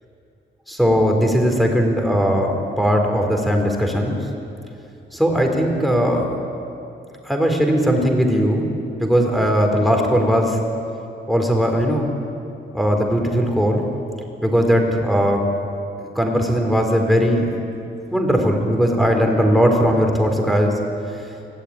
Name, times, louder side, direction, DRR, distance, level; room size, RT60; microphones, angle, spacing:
voice 1, 0.7-4.2 5.1-6.3 7.3-8.7 9.0-10.6 11.3-12.1 12.7-13.8 14.4-15.4 16.0-17.5 18.1-20.7, equal, ahead, 2 dB, 4.2 m, -18 dB
24.5 x 16.5 x 10.0 m, 2.7 s
cardioid pair, 110°, 19 cm